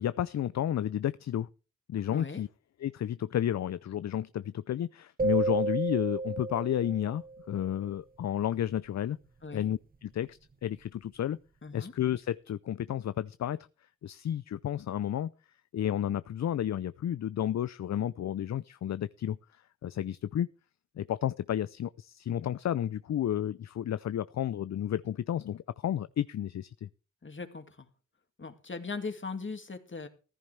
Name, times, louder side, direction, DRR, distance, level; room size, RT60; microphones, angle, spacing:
voice 1, 0.0-1.5 1.9-2.5 2.8-9.2 9.5-11.4 11.7-13.6 14.0-15.3 15.7-19.4 19.8-20.5 21.0-26.9, left 10 dB, 65° left, 0.5 m, -32 dB
voice 2, 2.1-2.4 9.4-9.7 11.6-11.9 27.2-27.9 28.4-30.1, left 4 dB, 40° left, 2.2 m, -39 dB
sound 1, 5.2-7.5, right 3 dB, 30° right, 0.8 m, -31 dB
15.0 x 10.5 x 3.3 m
cardioid pair, 45°, 30 cm